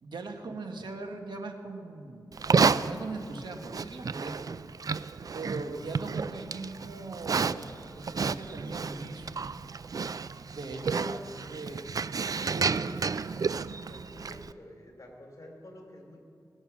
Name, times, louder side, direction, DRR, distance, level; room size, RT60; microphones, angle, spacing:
voice 1, 0.0-2.3 2.7-4.4 5.3-9.4 10.6-11.2 11.5-11.8 12.5-13.1, right 3 dB, 80° right, 3 dB, 1.4 m, -40 dB
Livestock farm animals working animals, 2.3-14.5, right 5 dB, 50° right, 0.4 m, -31 dB
voice 2, 13.9-16.2, left 1 dB, 40° left, 0 dB, 3.3 m, -49 dB
19.5 x 8.0 x 6.1 m, 2.4 s
cardioid pair, 60°, 8 cm